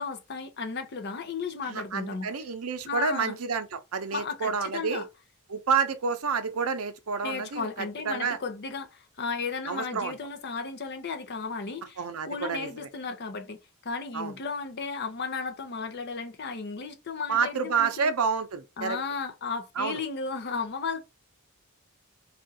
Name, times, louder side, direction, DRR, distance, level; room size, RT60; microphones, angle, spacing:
voice 1, 0.0-2.3 2.9-3.4 4.1-5.1 7.2-18.1 18.8-21.0, left 4 dB, 50° left, 0.7 m, -34 dB
voice 2, 1.7-5.0 5.5-8.4 9.7-10.1 12.0-12.9 14.1-14.3 17.3-19.0 19.8-20.0, right 5 dB, 80° right, 0.6 m, -29 dB
3.4 x 2.4 x 2.7 m
head